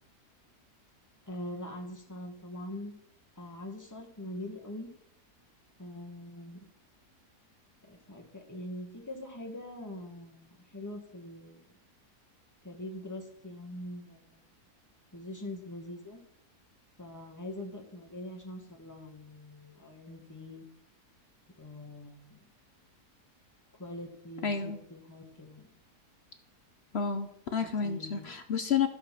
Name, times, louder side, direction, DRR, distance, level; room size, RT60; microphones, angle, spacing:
voice 1, 1.3-2.9 3.4-4.9 5.8-6.6 7.8-11.6 12.6-14.4 15.1-16.2 17.0-20.6 21.5-22.4 23.8-25.8 27.6-28.3, left 1 dB, 10° left, 1 dB, 1.6 m, -43 dB
voice 2, 24.4-24.8 26.9-28.9, left 6 dB, 55° left, 8 dB, 0.8 m, -30 dB
14.0 x 5.6 x 5.9 m, 0.74 s
omnidirectional pair, 1.7 m